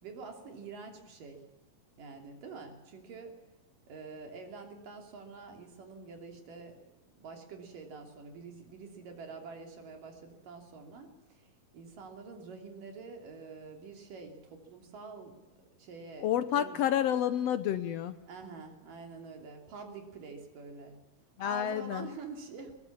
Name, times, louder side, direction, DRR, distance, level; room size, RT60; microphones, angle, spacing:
voice 1, 0.0-1.4 2.0-3.4 3.9-6.8 7.1-16.8 18.3-21.0 21.4-22.8, right 4 dB, 75° right, 4 dB, 4.6 m, -47 dB
voice 2, 16.2-18.2 21.4-22.1, left 10 dB, 75° left, 12 dB, 1.5 m, -29 dB
21.0 x 19.5 x 7.3 m, 1.1 s
omnidirectional pair, 3.9 m